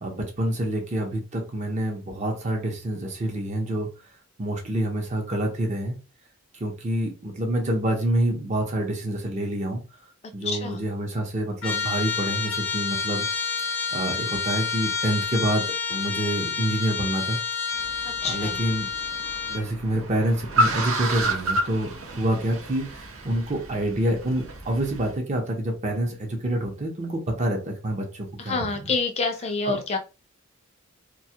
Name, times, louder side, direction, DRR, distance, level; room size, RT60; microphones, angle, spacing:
voice 1, 0.0-3.9 4.4-6.0 6.6-9.8 10.3-13.3 13.9-17.4 18.2-18.9 19.5-21.9 22.2-28.7 29.7-29.8, right 1 dB, 35° right, 0.6 m, -27 dB
voice 2, 10.4-10.9 18.0-18.6 28.4-30.0, left 4 dB, 30° left, 0.4 m, -27 dB
Trumpet, 11.6-19.7, left 5 dB, 70° left, 0.6 m, -29 dB
Car, 17.8-25.1, right 1 dB, 85° right, 0.7 m, -30 dB
2.2 x 2.1 x 2.7 m
head